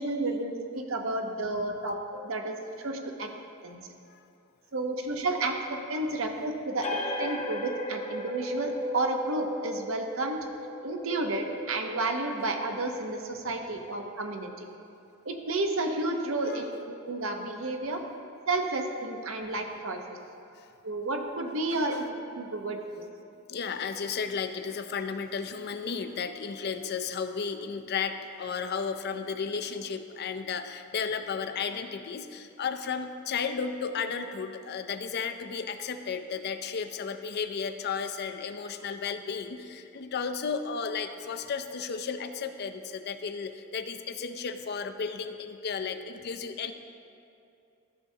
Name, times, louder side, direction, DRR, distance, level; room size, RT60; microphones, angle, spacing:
voice 1, 0.0-3.3 3.6-3.8 4.7-6.9 7.2-10.4 10.8-14.5 15.3-18.0 18.5-20.2 20.8-22.0 22.3-22.8, right 2 dB, 70° right, 4 dB, 0.8 m, -31 dB
sound 1, 6.8-14.0, left 1 dB, 30° left, 0.9 m, -37 dB
voice 2, 21.7-22.0 23.5-46.7, left 6 dB, 50° left, 9 dB, 0.4 m, -34 dB
13.5 x 6.6 x 2.7 m, 2.6 s
head